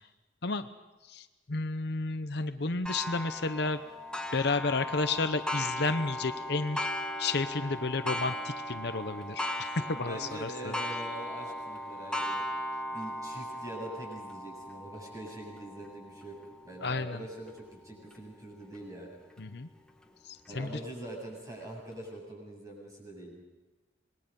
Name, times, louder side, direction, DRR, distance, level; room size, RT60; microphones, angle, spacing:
voice 1, 1.1-3.8 4.3-6.8 7.2-10.7 16.8-17.2 19.4-19.7 20.5-20.7, left 3 dB, 60° left, 10 dB, 0.9 m, -31 dB
Clock, 2.9-18.2 18.8-18.9 19.4-19.5 20.5-20.6, left 1 dB, 5° left, 1.8 m, -38 dB
voice 2, 9.9-12.5 12.9-16.4 16.6-19.2 20.5-23.4, right 1 dB, 20° right, -1 dB, 7.9 m, -43 dB
26.5 x 21.0 x 5.4 m, 1.1 s
head